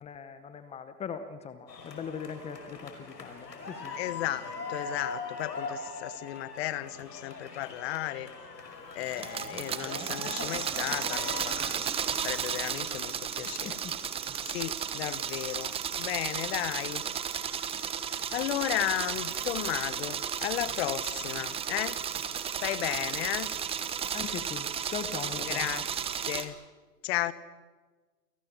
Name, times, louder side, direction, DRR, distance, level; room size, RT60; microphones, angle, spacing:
voice 1, 0.0-4.0 13.6-13.9 24.1-25.7, left 7 dB, 15° left, 11 dB, 0.9 m, -40 dB
sound 1, 1.7-11.5, left 4 dB, 90° left, 5.5 m, -41 dB
voice 2, 4.0-8.3 8.9-11.8 12.2-13.8 14.5-17.0 18.1-22.0 22.6-23.5 25.4-25.9 26.3-26.5 27.0-27.3, left 15 dB, 40° left, 17 dB, 1.2 m, -34 dB
sound 2, 9.0-26.5, right 8 dB, 10° right, 1.0 m, -34 dB
29.0 x 19.0 x 7.3 m, 1.3 s
hypercardioid pair, 135°, 48 cm